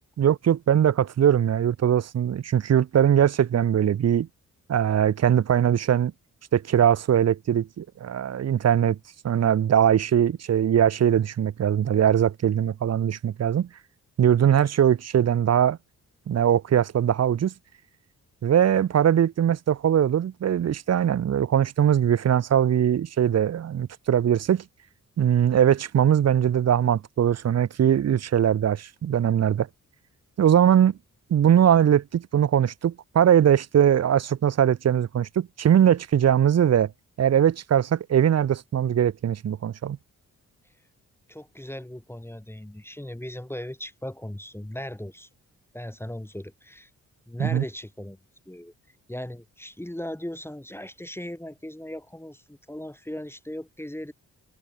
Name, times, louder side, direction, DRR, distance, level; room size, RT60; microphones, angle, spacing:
voice 1, 0.2-4.3 4.7-6.1 6.5-9.0 9.2-13.7 14.2-15.8 16.3-17.5 18.4-24.6 25.2-29.7 30.4-30.9 31.3-36.9 37.2-40.0 47.4-47.6, right 9 dB, 50° right, 0.7 m, -21 dB
voice 2, 41.3-45.3 45.7-46.9 47.3-48.2 48.5-48.7 49.1-54.1, left 1 dB, 5° left, 2.5 m, -38 dB
cardioid pair, 60°, 34 cm